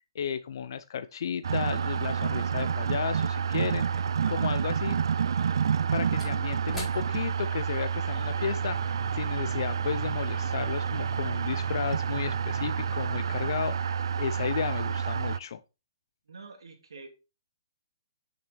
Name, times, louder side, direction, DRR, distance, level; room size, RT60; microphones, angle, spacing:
voice 1, 0.1-5.0 5.9-15.6, left 8 dB, 55° left, 0.5 m, -34 dB
sound 1, 1.4-15.4, right 7 dB, 75° right, 0.4 m, -29 dB
Slam / Wood, 6.2-10.0 10.3-10.5, left 1 dB, 5° left, 5.0 m, -48 dB
sound 2, 8.2-13.7, right 5 dB, 15° right, 1.3 m, -47 dB
voice 2, 16.3-17.1, right 4 dB, 90° right, 2.3 m, -46 dB
8.8 x 6.6 x 3.3 m
hypercardioid pair, 160°, 2 cm